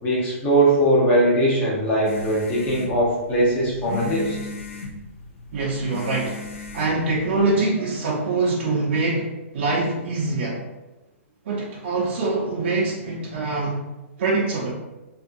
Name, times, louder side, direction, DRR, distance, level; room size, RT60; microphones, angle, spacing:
voice 1, 0.0-4.3, right 1 dB, 20° left, -6 dB, 0.8 m, -20 dB
sound 1, 2.0-7.5, left 3 dB, 70° left, 0.6 m, -36 dB
voice 2, 5.5-6.4 6.7-10.6 11.4-13.8 14.2-14.7, right 3 dB, 55° right, -4 dB, 0.6 m, -24 dB
2.6 x 2.4 x 2.5 m, 1.1 s
hypercardioid pair, 155°, 7 cm